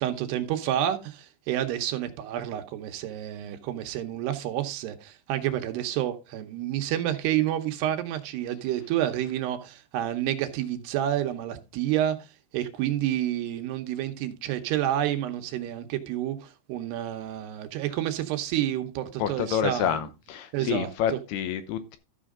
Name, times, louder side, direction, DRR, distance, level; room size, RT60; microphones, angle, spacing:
voice 1, 0.0-12.2 12.5-20.1 20.5-20.9, right 12 dB, 75° right, 2.8 m, -29 dB
voice 2, 19.2-22.0, left 9 dB, 75° left, 2.6 m, -28 dB
13.0 x 6.2 x 3.6 m
omnidirectional pair, 5.0 m